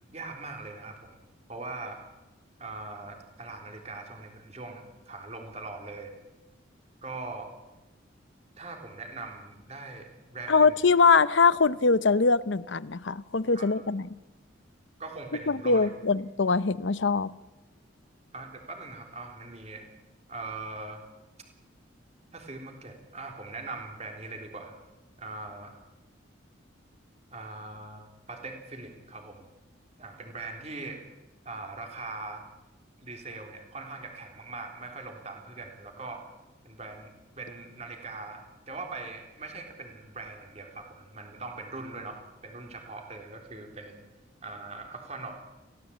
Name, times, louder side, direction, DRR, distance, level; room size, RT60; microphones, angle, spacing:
voice 1, 0.1-1.2 1.5-2.0 2.6-6.1 7.0-7.5 8.6-10.7 13.5-13.8 15.0-15.9 18.3-19.9 20.3-21.0 22.3-24.7 25.2-25.7 27.3-29.5 30.0-31.0 31.4-32.4 33.0-36.3 36.6-44.0 44.4-45.4, right 3 dB, 35° right, 3 dB, 3.5 m, -41 dB
voice 2, 10.5-14.1 15.5-17.3, left 4 dB, 70° left, 16 dB, 0.8 m, -23 dB
22.5 x 16.5 x 8.5 m, 1.1 s
head